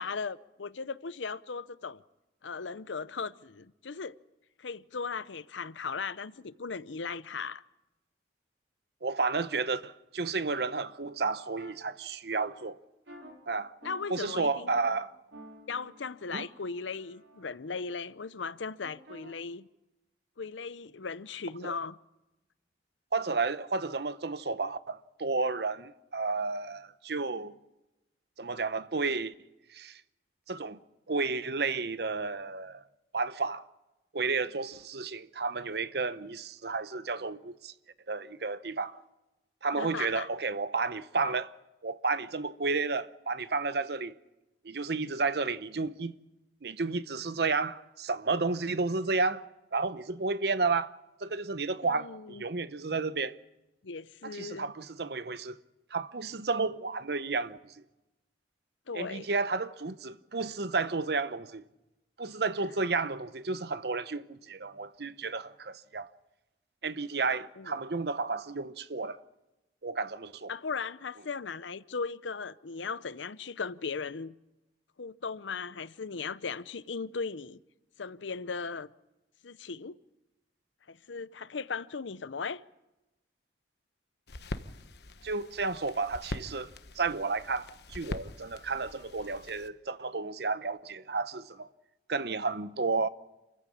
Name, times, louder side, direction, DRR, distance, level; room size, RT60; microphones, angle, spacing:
voice 1, 0.0-2.0 2.4-4.1 4.6-7.6 13.8-14.7 15.7-19.7 20.4-22.0 39.7-40.3 51.8-52.4 53.8-54.7 58.9-59.3 67.6-67.8 70.5-74.3 75.0-77.6 78.0-78.9 79.4-80.0 80.9-82.6, left 5 dB, 90° left, 0.7 m, -37 dB
voice 2, 9.0-12.8 13.5-13.7 14.1-15.1 16.3-16.5 21.6-21.7 23.1-27.5 28.4-29.3 29.7-30.0 30.5-30.8 31.1-32.8 33.1-33.6 34.1-37.7 38.1-39.0 39.6-41.5 41.8-44.2 44.6-46.1 46.6-49.4 49.7-50.9 51.2-53.4 54.2-55.6 55.9-57.7 58.9-61.6 62.2-66.1 66.8-69.2 69.8-70.5 85.2-91.7 92.1-93.1, right 4 dB, 60° right, 0.8 m, -32 dB
sound 1, 11.6-11.7 12.3-12.5 13.1-13.3 13.8-14.0 14.3-14.8 15.3-17.6 18.8-19.3, right 1 dB, 80° right, 4.5 m, -50 dB
sound 2, 84.3-89.7, left 2 dB, 60° left, 1.1 m, -43 dB
27.5 x 15.0 x 8.6 m
head